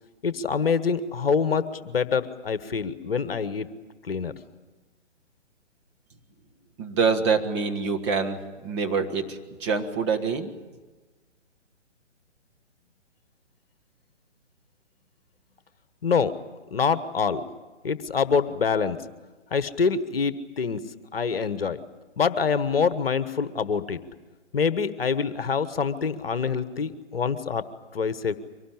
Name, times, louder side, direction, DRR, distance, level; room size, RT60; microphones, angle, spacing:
voice 1, 0.2-3.7 4.0-4.3 16.0-16.3 16.7-17.4 17.8-19.0 19.5-20.8 21.1-21.8 22.2-24.0 24.5-27.6 27.9-28.4, left 5 dB, 50° left, 13 dB, 1.3 m, -25 dB
voice 2, 6.8-10.5, right 5 dB, 25° right, 3 dB, 1.5 m, -26 dB
24.5 x 18.5 x 10.0 m, 1.2 s
figure-of-eight pair, 135°, 36 cm